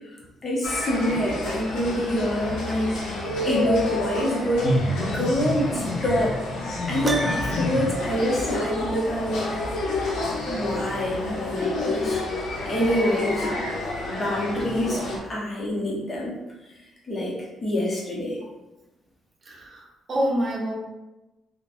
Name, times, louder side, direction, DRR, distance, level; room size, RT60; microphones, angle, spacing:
voice 1, 0.4-3.2 3.4-4.8 5.1-6.4 6.9-9.5 10.5-12.2 12.7-13.5 14.1-16.3 17.1-17.4 17.6-18.4, equal, 35° left, -4 dB, 0.9 m, -26 dB
sound 1, 0.6-15.2, left 1 dB, 80° left, 0.7 m, -29 dB
Piano, 7.0-7.9, right 1 dB, 25° right, 0.3 m, -29 dB
voice 2, 19.5-20.7, equal, 45° right, -2 dB, 0.7 m, -27 dB
2.9 x 2.1 x 2.6 m, 1.0 s
cardioid pair, 90°, 0 cm